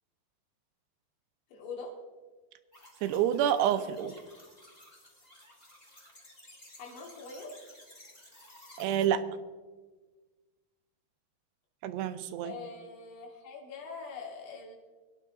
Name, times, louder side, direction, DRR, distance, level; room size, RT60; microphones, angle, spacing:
voice 1, 1.5-1.9 6.7-7.5 12.4-14.8, left 4 dB, 85° left, -1 dB, 4.4 m, -43 dB
sound 1, 2.7-9.1, left 1 dB, 15° left, 1.4 m, -55 dB
voice 2, 3.0-4.1 8.8-9.2 11.8-12.5, right 10 dB, 90° right, 10 dB, 2.9 m, -28 dB
22.5 x 10.0 x 3.7 m, 1.3 s
omnidirectional pair, 4.8 m